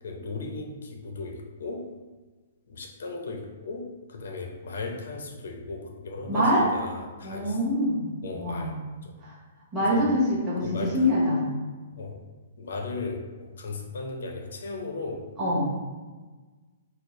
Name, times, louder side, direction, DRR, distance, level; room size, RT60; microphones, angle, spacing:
voice 1, 0.0-1.9 2.7-7.6 8.2-8.7 9.0-9.1 9.9-10.1 10.6-11.3 12.0-12.2 12.6-15.3, left 3 dB, 75° left, 2 dB, 0.6 m, -36 dB
voice 2, 6.3-6.6 7.2-8.1 8.3-8.7 9.7-11.4 15.4-15.7, equal, 10° right, -10 dB, 0.9 m, -24 dB
4.3 x 2.0 x 3.1 m, 1.3 s
hypercardioid pair, 175°, 0 cm